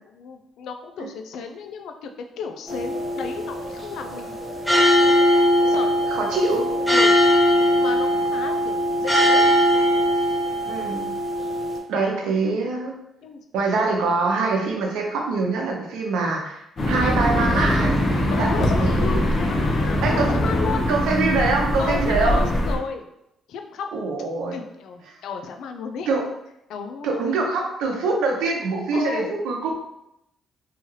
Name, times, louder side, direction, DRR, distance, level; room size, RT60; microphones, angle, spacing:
voice 1, 0.0-2.1 2.4-4.4 5.4-6.0 6.9-7.2 7.8-9.5 13.2-13.4 18.3-20.9 21.8-23.1 23.5-24.1 24.5-26.1 26.7-27.4 28.9-29.3, left 5 dB, 80° left, 5 dB, 0.3 m, -33 dB
sound 1, 2.7-11.8, equal, 5° left, 0.7 m, -20 dB
voice 2, 6.1-6.6 10.7-11.1 11.9-12.9 13.5-16.6 16.9-18.9 20.0-20.3 20.9-22.4 23.9-24.6 26.1-26.2 27.0-29.8, right 3 dB, 85° right, 1 dB, 0.6 m, -24 dB
sound 2, 16.8-22.8, left 1 dB, 50° left, 0.7 m, -22 dB
2.8 x 2.3 x 3.1 m, 0.82 s
cardioid pair, 90°, 0 cm